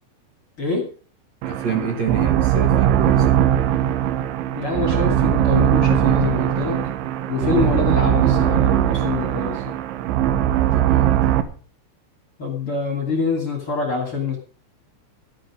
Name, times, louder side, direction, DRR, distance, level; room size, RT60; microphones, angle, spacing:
voice 1, 1.4-3.4 10.7-11.4, right 5 dB, 50° right, 3 dB, 2.4 m, -29 dB
sound 1, 1.4-11.4, right 11 dB, 80° right, 3.4 m, -19 dB
voice 2, 4.5-6.8 7.3-9.7 12.4-14.4, left 4 dB, 35° left, 2 dB, 2.6 m, -25 dB
13.5 x 10.0 x 6.3 m, 0.41 s
omnidirectional pair, 5.4 m